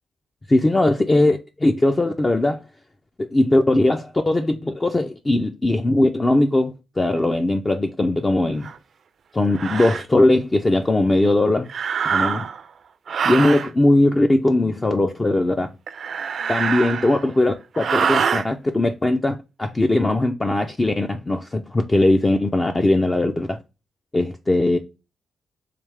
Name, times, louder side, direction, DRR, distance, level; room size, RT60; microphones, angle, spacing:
voice 1, 0.5-2.6 3.2-8.7 9.3-11.7 12.1-12.4 13.2-15.7 16.5-23.6 24.1-24.8, left 2 dB, 20° left, 0.3 m, -19 dB
sound 1, 8.6-8.8 9.5-10.0 11.7-12.6 13.1-13.7 15.9-17.3 17.8-18.5, right 6 dB, 55° right, 0.4 m, -24 dB
3.3 x 3.1 x 3.3 m
cardioid pair, 120°, 0 cm